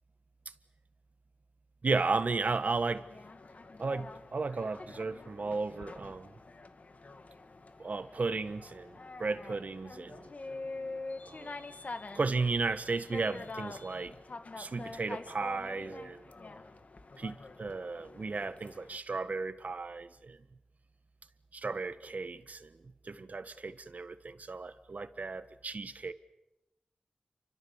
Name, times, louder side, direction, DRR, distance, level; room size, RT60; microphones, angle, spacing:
voice 1, 1.8-3.1 3.8-6.3 7.8-10.3 11.3-11.6 12.1-14.2 14.6-16.3 17.2-20.4 21.5-22.7 23.0-26.1, right 3 dB, 55° right, 11 dB, 1.5 m, -34 dB
sound 1, 2.1-19.0, left 3 dB, 50° left, 2.0 m, -46 dB
30.0 x 24.5 x 7.3 m, 0.89 s
wide cardioid pair, 95°, 3 cm